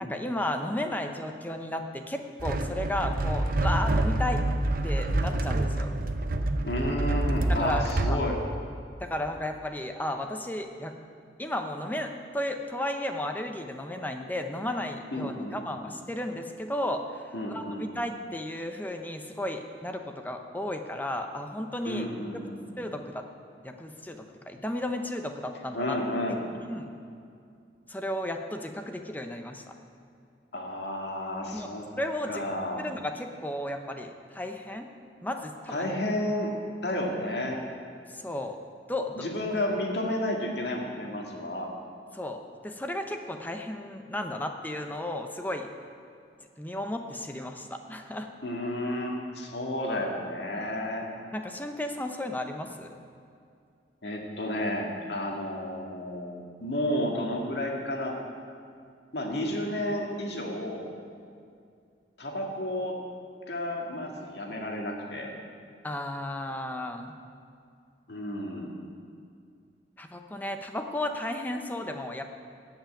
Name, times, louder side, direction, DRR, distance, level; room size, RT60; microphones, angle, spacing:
voice 1, 0.1-4.4 4.8-5.9 7.5-8.2 9.0-10.9 11.4-17.0 17.5-22.1 22.8-23.2 23.6-26.0 26.7-26.9 27.9-29.7 31.5-31.7 32.0-34.9 35.2-35.9 38.1-38.6 38.9-39.3 42.1-45.7 46.6-48.3 51.3-52.9 65.8-67.1 70.0-72.2, left 1 dB, 10° left, 5 dB, 0.7 m, -34 dB
sound 1, 2.4-8.2, right 2 dB, 50° right, 0.7 m, -27 dB
voice 2, 6.6-8.4 15.1-15.6 17.3-17.9 21.9-22.7 25.7-26.4 30.5-31.9 32.3-32.8 35.7-36.5 36.8-37.6 39.2-41.7 48.4-51.1 54.0-58.1 59.1-60.9 62.2-62.9 63.5-65.3 68.1-68.7, left 1 dB, 70° left, 0 dB, 2.0 m, -31 dB
15.5 x 5.9 x 8.9 m, 2.4 s
head